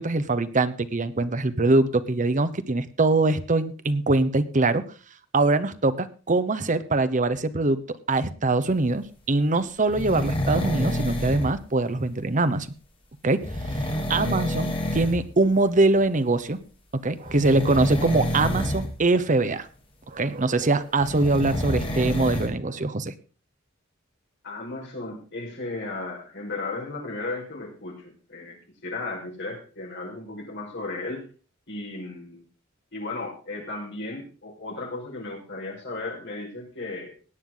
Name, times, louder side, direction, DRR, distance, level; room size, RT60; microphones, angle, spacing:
voice 1, 0.0-4.8 5.3-12.7 13.2-16.6 17.0-19.7 20.1-23.1, right 2 dB, 40° right, 12 dB, 0.9 m, -23 dB
sound 1, 9.9-11.5 13.4-15.2 15.5-15.8 17.2-18.9 21.0-22.5, equal, 25° left, 3.1 m, -28 dB
voice 2, 24.4-31.2 31.7-32.4 32.9-37.1, left 2 dB, 60° left, 0 dB, 5.1 m, -35 dB
17.5 x 9.4 x 3.9 m, 0.37 s
head